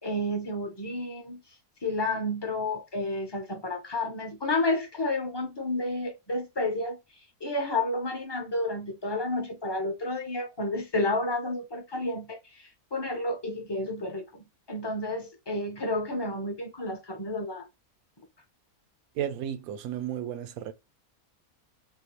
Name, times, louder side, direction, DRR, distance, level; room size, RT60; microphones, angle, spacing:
voice 1, 0.0-1.4 1.8-7.0 7.4-17.7, left 2 dB, 25° left, 0.6 m, -31 dB
voice 2, 19.2-20.7, right 10 dB, 80° right, 1.0 m, -33 dB
3.6 x 2.3 x 2.9 m
omnidirectional pair, 1.5 m